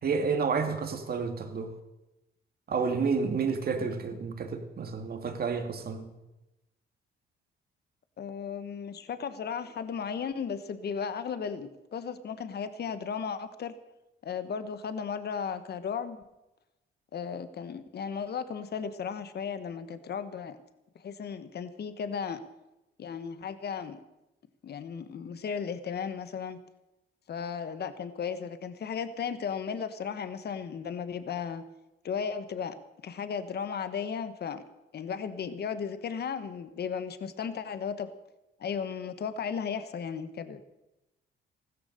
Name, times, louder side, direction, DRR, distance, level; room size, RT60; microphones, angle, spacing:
voice 1, 0.0-1.8 2.7-6.1, right 5 dB, 50° right, 2.3 m, -30 dB
voice 2, 8.2-13.7 14.2-16.2 17.1-20.6 20.9-22.4 23.0-24.0 24.6-26.6 27.3-31.6 32.0-32.7 33.0-34.6 34.9-38.1 38.6-40.6, left 6 dB, 55° left, 1.3 m, -35 dB
15.5 x 13.5 x 6.7 m
cardioid pair, 90°, 20 cm